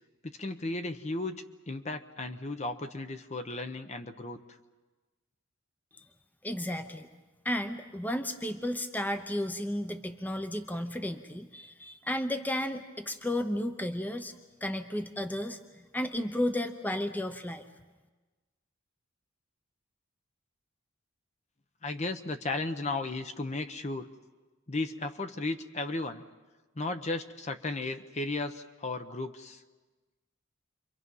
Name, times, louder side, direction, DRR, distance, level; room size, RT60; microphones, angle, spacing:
voice 1, 0.2-4.4 21.8-24.1 24.7-26.2 26.8-29.6, left 2 dB, 35° left, 8 dB, 0.9 m, -35 dB
voice 2, 6.4-7.1 7.4-14.3 14.6-15.6 15.9-17.6, left 1 dB, 10° left, 7 dB, 0.8 m, -33 dB
29.0 x 24.0 x 5.6 m, 1.2 s
head